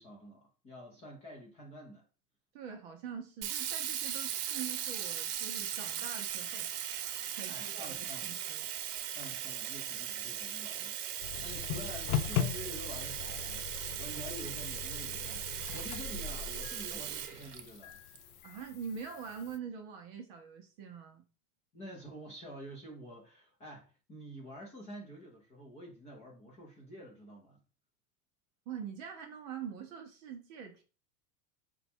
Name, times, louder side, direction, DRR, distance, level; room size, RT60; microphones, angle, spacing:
voice 1, 0.0-2.1 7.5-8.3 9.1-13.7 14.0-18.0 21.7-27.6, equal, 15° left, 0.5 m, -48 dB
voice 2, 2.5-6.7 7.0-8.7 11.4-11.6 18.4-21.2 28.7-30.8, right 7 dB, 35° right, 0.6 m, -44 dB
Sink (filling or washing), 3.4-18.2, right 10 dB, 75° right, 0.7 m, -38 dB
sound 1, 11.2-19.6, left 9 dB, 70° left, 0.5 m, -39 dB
5.2 x 2.3 x 4.2 m
supercardioid pair, 175°, 47 cm